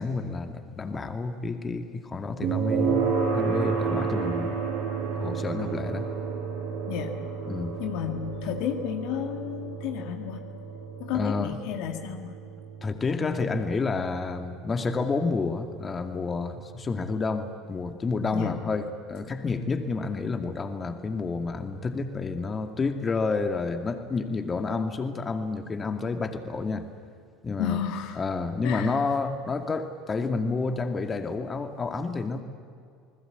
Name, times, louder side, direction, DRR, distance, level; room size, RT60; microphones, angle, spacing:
voice 1, 0.0-4.6 5.1-6.1 7.5-7.8 11.1-11.6 12.8-26.9 27.4-27.8 28.2-32.4, left 4 dB, 25° left, 7 dB, 2.4 m, -30 dB
sound 1, 2.4-17.4, right 6 dB, 70° right, 6.9 m, -31 dB
voice 2, 7.8-10.4 11.0-12.3 18.3-18.6 27.6-28.2 28.6-29.0, left 9 dB, 60° left, 5 dB, 2.0 m, -32 dB
28.5 x 20.0 x 8.3 m, 2.3 s
hypercardioid pair, 70°, 0 cm